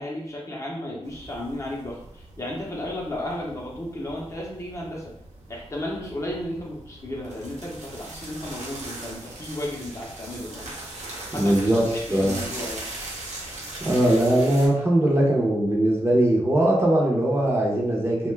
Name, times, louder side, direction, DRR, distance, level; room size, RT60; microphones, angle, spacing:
voice 1, 0.0-5.1 5.5-10.7 11.3-12.9, left 1 dB, 25° left, -3 dB, 0.6 m, -34 dB
sound 1, 1.0-14.7, right 2 dB, 85° right, 0.8 m, -40 dB
voice 2, 11.4-11.8 12.1-12.4 13.8-18.3, right 1 dB, 20° right, -3 dB, 0.6 m, -20 dB
2.6 x 2.2 x 3.2 m, 0.72 s
wide cardioid pair, 135°, 11 cm